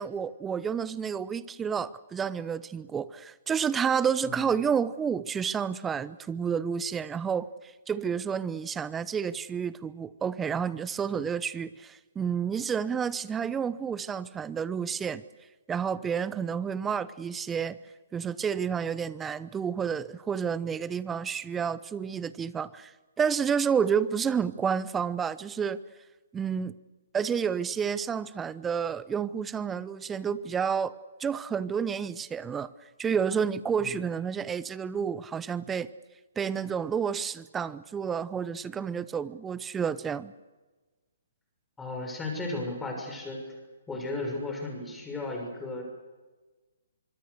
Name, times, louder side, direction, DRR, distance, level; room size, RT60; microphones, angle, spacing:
voice 1, 0.0-7.5 7.9-15.2 15.7-17.8 18.1-22.9 23.2-25.8 26.3-26.7 27.1-30.9 31.2-32.7 33.0-35.9 36.4-40.3, right 7 dB, 10° right, 17 dB, 0.8 m, -30 dB
voice 2, 4.2-4.6 33.8-34.0 41.8-43.4 43.9-45.8, left 2 dB, 10° left, 1 dB, 6.5 m, -35 dB
25.5 x 23.5 x 6.7 m, 1.2 s
hypercardioid pair, 140°, 0 cm